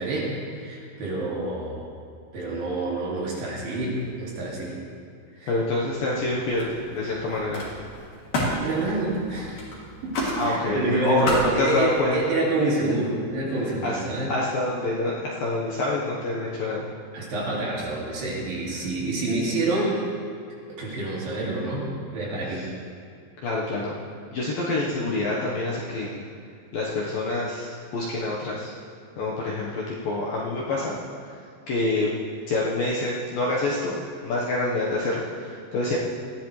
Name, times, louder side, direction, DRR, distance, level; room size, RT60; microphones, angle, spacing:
voice 1, 0.0-1.9 2.3-4.8 5.4-5.5 8.6-9.6 10.0-14.4 17.1-20.0 20.7-22.6, right 2 dB, 55° right, -5 dB, 3.9 m, -27 dB
voice 2, 5.5-7.6 10.4-12.1 12.9-13.0 13.8-14.0 14.3-16.9 22.5-22.6 23.4-23.9 24.3-26.2 26.7-28.7 29.2-30.9 31.7-32.1 32.5-34.0 34.2-36.0, left 2 dB, 65° left, -5 dB, 2.4 m, -26 dB
Camera, 5.6-6.2 6.5-12.0, left 1 dB, 45° left, 3.9 m, -32 dB
20.5 x 14.5 x 3.3 m, 2.3 s
omnidirectional pair, 5.5 m